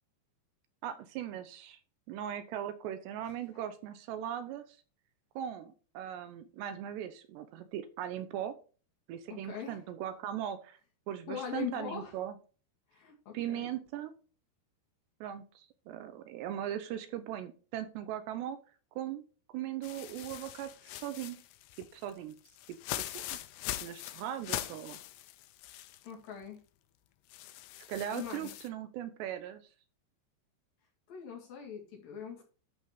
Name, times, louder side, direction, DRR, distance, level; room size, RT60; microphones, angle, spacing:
voice 1, 0.8-1.8 2.1-4.8 5.4-8.6 9.1-10.8 11.1-12.4 13.3-14.1 15.2-18.6 19.0-19.2 19.5-21.4 21.9-22.4 23.0-23.4 23.8-25.0 27.9-29.7, right 10 dB, 80° right, 10 dB, 2.8 m, -39 dB
voice 2, 9.3-9.8 11.3-12.1 12.9-13.7 26.0-26.6 28.1-28.5 31.1-32.4, left 8 dB, 55° left, 0 dB, 3.5 m, -41 dB
sound 1, 19.8-26.1 26.4-26.5 27.3-28.7, left 14 dB, 80° left, 2.3 m, -42 dB
11.5 x 4.2 x 4.7 m, 0.37 s
omnidirectional pair, 5.2 m